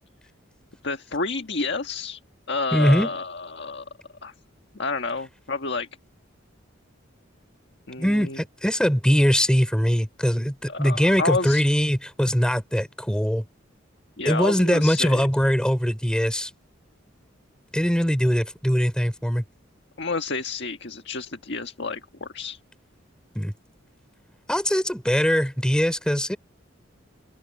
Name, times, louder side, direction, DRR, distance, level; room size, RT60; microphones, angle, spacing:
voice 1, 0.8-2.2 2.5-3.8 4.2-4.3 4.7-5.9 7.9-8.4 10.7-11.7 14.2-15.2 20.0-22.6, left 3 dB, 60° left, 1.6 m, -29 dB
voice 2, 2.7-3.1 8.0-13.4 14.2-16.5 17.7-19.4 23.3-23.5 24.5-26.4, equal, 5° left, 6.0 m, -22 dB
open air
head